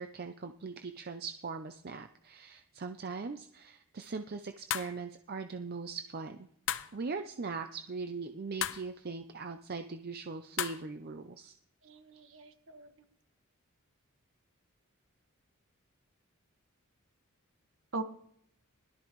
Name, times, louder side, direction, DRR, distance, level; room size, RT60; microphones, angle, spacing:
voice 1, 0.0-6.5 6.9-11.5, right 4 dB, 45° right, 7 dB, 0.6 m, -40 dB
sound 1, 4.7-5.0 6.7-7.0 8.6-8.9 10.6-10.9, left 10 dB, 60° left, 0.6 m, -34 dB
voice 2, 11.8-12.9 17.9-18.0, right 3 dB, 60° right, 7 dB, 1.3 m, -41 dB
20.5 x 12.5 x 3.1 m, 0.67 s
head